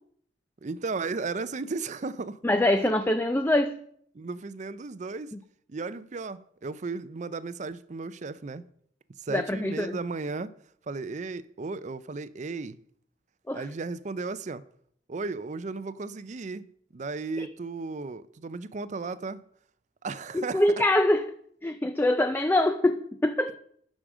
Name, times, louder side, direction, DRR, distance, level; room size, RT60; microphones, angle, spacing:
voice 1, 0.6-2.4 2.8-2.9 4.1-5.3 5.7-8.6 9.2-10.5 10.9-12.8 13.5-14.6 15.1-16.7 16.9-19.4 20.0-20.6, right 4 dB, 40° right, 0.5 m, -35 dB
voice 2, 2.4-3.7 9.3-10.0 13.5-13.6 17.4-17.5 20.3-21.3 21.6-23.5, left 1 dB, 10° left, 0.4 m, -24 dB
9.9 x 6.4 x 6.1 m
head